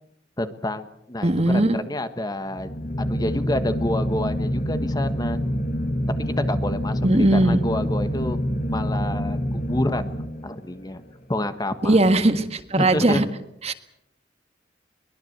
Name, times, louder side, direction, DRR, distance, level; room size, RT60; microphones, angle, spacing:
voice 1, 0.4-2.7 3.0-5.4 6.3-8.4 8.7-10.1 10.4-11.0 11.3-12.0 12.8-13.2, left 1 dB, 20° left, 10 dB, 1.4 m, -28 dB
voice 2, 1.2-1.8 7.0-7.6 11.8-13.3 13.6-13.7, right 1 dB, 35° right, 9 dB, 1.7 m, -19 dB
sound 1, 2.5-10.8, equal, 50° left, 2.1 m, -26 dB
23.0 x 21.0 x 8.1 m, 0.78 s
head